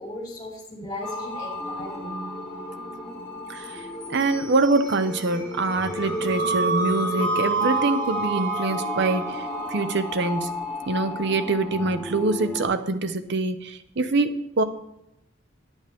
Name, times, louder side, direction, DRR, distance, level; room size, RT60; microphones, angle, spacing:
voice 1, 0.0-2.1, left 1 dB, 20° left, -4 dB, 2.9 m, -37 dB
sound 1, 1.0-12.6, right 2 dB, 5° left, 3.6 m, -30 dB
voice 2, 3.5-10.5 10.9-14.6, right 3 dB, 60° right, 10 dB, 0.7 m, -25 dB
9.8 x 9.0 x 3.5 m, 0.85 s
head